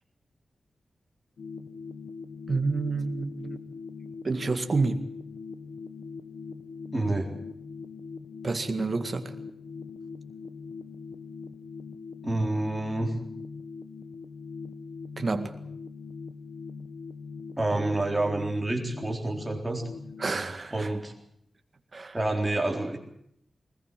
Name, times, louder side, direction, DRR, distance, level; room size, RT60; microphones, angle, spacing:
sound 1, 1.4-20.3, left 5 dB, 70° left, 1.3 m, -41 dB
voice 1, 2.5-3.6 4.2-5.0 8.4-9.3 15.2-15.5 20.2-20.9 21.9-22.2, right 3 dB, 35° right, 7 dB, 2.0 m, -29 dB
voice 2, 6.9-7.3 12.2-13.1 17.6-19.9 20.7-21.1 22.1-23.0, right 2 dB, 15° right, 1 dB, 3.9 m, -28 dB
21.0 x 20.0 x 7.6 m, 0.71 s
wide cardioid pair, 150°, 0 cm